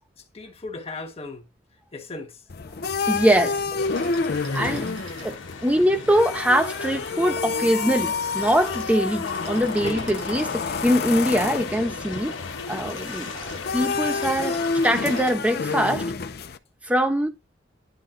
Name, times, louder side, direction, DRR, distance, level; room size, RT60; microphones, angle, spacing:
voice 1, 0.2-1.5 1.9-2.4 9.8-10.2, left 2 dB, 30° left, 1.4 m, -36 dB
sound 1, 2.5-16.6, left 4 dB, 55° left, 0.6 m, -29 dB
sound 2, 2.7-5.6 8.0-10.9 12.6-15.4 15.7-15.8, right 3 dB, 90° right, 5.5 m, -46 dB
voice 2, 3.1-3.6 4.5-4.9 5.2-12.3 12.7-13.3 13.7-14.6 14.8-16.1 16.8-17.3, equal, 5° right, 1.0 m, -22 dB
sound 3, 3.8-15.2, left 4 dB, 80° left, 1.5 m, -37 dB
10.5 x 3.7 x 3.8 m
head